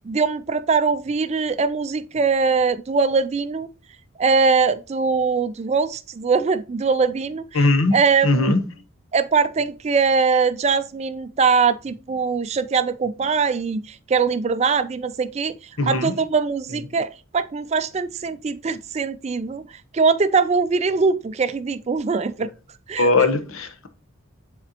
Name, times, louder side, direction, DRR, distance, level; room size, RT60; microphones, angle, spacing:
voice 1, 0.0-3.7 4.2-7.6 7.9-8.6 9.1-19.7 19.9-22.5 22.9-23.1, right 5 dB, 30° right, 0.3 m, -22 dB
voice 2, 7.5-8.0 8.2-8.6 15.8-16.1 23.0-23.9, left 2 dB, 70° left, 0.9 m, -19 dB
9.9 x 4.2 x 2.8 m
head